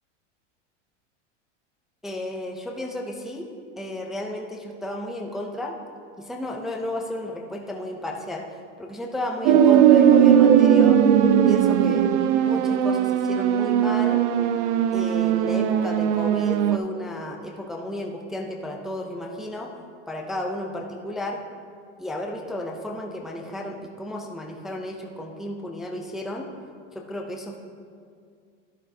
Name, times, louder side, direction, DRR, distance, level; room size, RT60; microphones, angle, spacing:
voice 1, 2.0-3.5 3.8-5.8 6.2-8.4 8.8-11.0 11.4-12.1 12.5-14.2 14.9-19.7 20.1-21.4 22.0-26.5 26.9-27.6, left 1 dB, ahead, 0 dB, 0.3 m, -33 dB
sound 1, 9.4-16.8, right 9 dB, 70° right, 0.6 m, -18 dB
12.0 x 10.0 x 2.7 m, 2.2 s
supercardioid pair, 140°, 36 cm